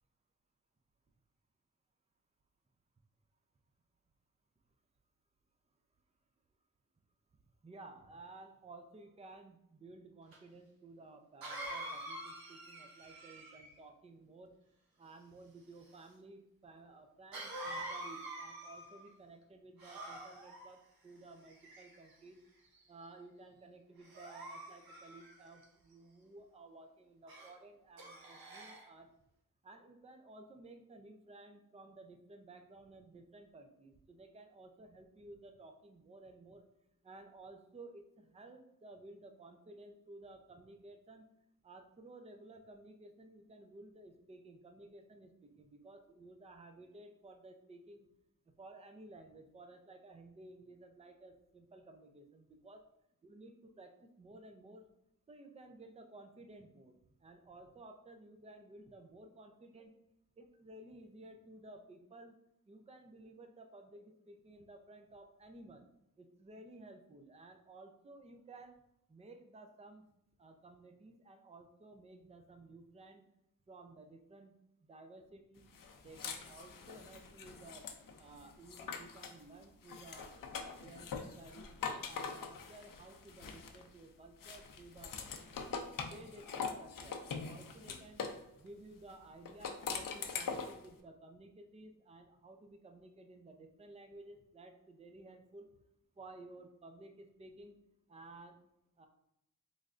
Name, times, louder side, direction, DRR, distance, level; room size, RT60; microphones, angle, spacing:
voice 1, 7.6-14.5 15.0-22.4 22.9-29.1 29.6-36.6 37.0-41.2 41.6-48.1 48.6-52.8 53.2-54.9 55.3-59.9 60.4-62.3 62.7-65.9 66.2-68.8 69.1-70.0 70.4-73.3 73.7-75.7 76.0-77.9 78.2-80.4 80.8-81.1 81.4-85.2 86.0-88.3 88.6-95.7 96.2-97.8 98.1-98.6 99.0-99.1, right 2 dB, 20° right, 6 dB, 0.4 m, -55 dB
Cough, 10.3-10.4 11.4-13.8 17.3-19.1 19.8-20.7 21.5-22.1 22.7-23.0 24.0-25.6 27.3-27.5 28.0-28.9, right 1 dB, 90° right, 0.7 m, -46 dB
sound 1, 75.7-79.4 79.8-84.0 84.4-88.4 89.4-90.8, left 5 dB, 70° left, 0.5 m, -43 dB
3.8 x 3.2 x 2.4 m, 0.82 s
cardioid pair, 60°, 35 cm